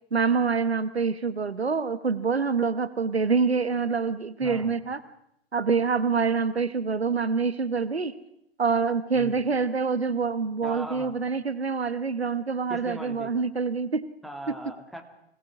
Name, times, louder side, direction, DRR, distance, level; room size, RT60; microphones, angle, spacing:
voice 1, 0.1-5.0 5.5-8.1 8.6-14.1, right 5 dB, 80° right, 14 dB, 1.2 m, -26 dB
voice 2, 4.4-4.7 9.1-9.4 10.6-11.2 12.7-13.4 14.2-15.0, right 1 dB, ahead, 3 dB, 2.5 m, -39 dB
25.5 x 18.5 x 6.2 m, 0.80 s
figure-of-eight pair, 105°, 31 cm